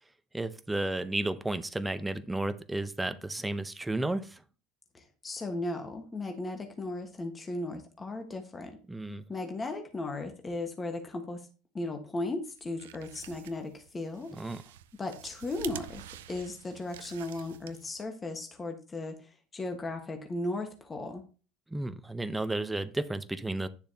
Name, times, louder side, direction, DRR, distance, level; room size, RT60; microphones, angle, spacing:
voice 1, 0.3-4.4 8.9-9.2 14.3-14.6 21.7-23.7, right 2 dB, 10° right, 0.7 m, -33 dB
voice 2, 4.9-8.8 9.3-11.5 11.7-14.3 15.0-21.2, left 2 dB, 20° left, 1.4 m, -36 dB
sound 1, 12.5-18.1, right 11 dB, 80° right, 0.5 m, -47 dB
9.9 x 6.8 x 2.8 m
hypercardioid pair, 80°, 0 cm